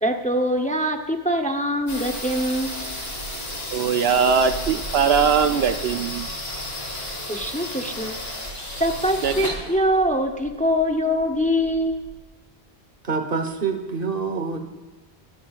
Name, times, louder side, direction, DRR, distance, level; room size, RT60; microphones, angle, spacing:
voice 1, 0.0-2.8 7.3-8.1 8.8-12.1, equal, 10° left, 4 dB, 0.8 m, -23 dB
sound 1, 1.9-12.2, left 1 dB, 75° left, 3.1 m, -33 dB
voice 2, 3.7-6.3 9.2-9.5, right 6 dB, 75° right, 9 dB, 0.9 m, -21 dB
voice 3, 13.0-14.6, right 5 dB, 55° right, 6 dB, 1.5 m, -26 dB
22.5 x 13.0 x 2.5 m, 1.3 s
omnidirectional pair, 1.1 m